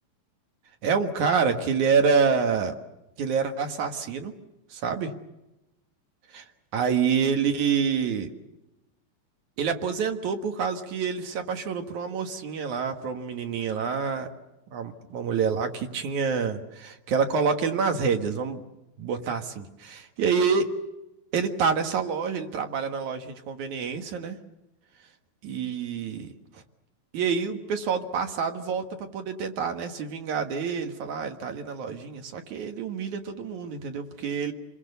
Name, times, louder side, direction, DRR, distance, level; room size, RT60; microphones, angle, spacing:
voice 1, 0.8-2.8 3.2-4.3 4.7-5.1 6.3-6.4 6.7-8.3 9.6-14.3 14.7-18.6 19.0-20.8 21.3-24.4 25.4-26.3 26.5-26.6 27.1-34.5, right 6 dB, 60° right, 6 dB, 2.6 m, -27 dB
28.5 x 22.0 x 6.9 m, 0.96 s
omnidirectional pair, 4.2 m